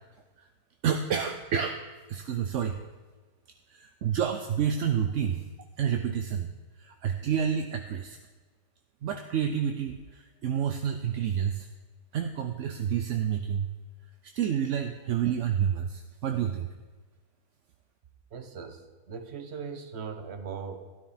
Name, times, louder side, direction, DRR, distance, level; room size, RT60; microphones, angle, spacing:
voice 1, 0.8-1.8 2.1-2.8 3.7-5.4 5.8-6.5 6.8-8.2 9.0-11.7 12.1-13.7 14.3-16.7, right 8 dB, 60° right, 6 dB, 0.9 m, -29 dB
voice 2, 18.3-20.8, right 6 dB, 45° right, 7 dB, 1.2 m, -39 dB
13.0 x 12.5 x 4.2 m, 1.3 s
omnidirectional pair, 1.6 m